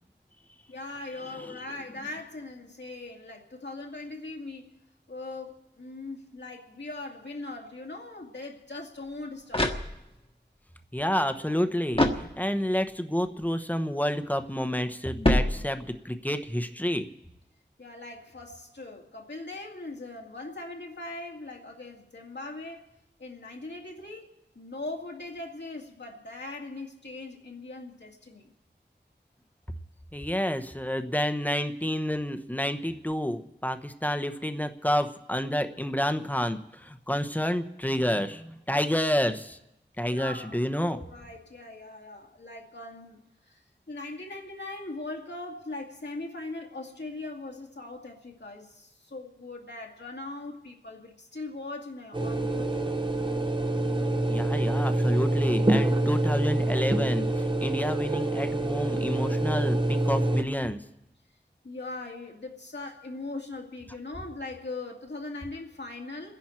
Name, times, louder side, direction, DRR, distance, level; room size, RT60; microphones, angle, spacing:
voice 1, 0.7-4.8 5.1-9.7 17.8-22.9 23.2-24.3 24.6-28.5 40.1-43.6 43.9-52.9 61.6-66.4, left 2 dB, 70° left, 2.1 m, -40 dB
sound 1, 9.0-10.4 11.9-12.8 15.2-16.1, left 1 dB, 30° left, 1.5 m, -27 dB
voice 2, 10.9-17.1 30.1-39.6 40.0-41.0 54.3-60.8, equal, 10° left, 1.0 m, -29 dB
sound 2, 52.1-60.4, right 1 dB, 25° right, 1.1 m, -26 dB
29.0 x 10.5 x 4.5 m
wide cardioid pair, 55°, 19 cm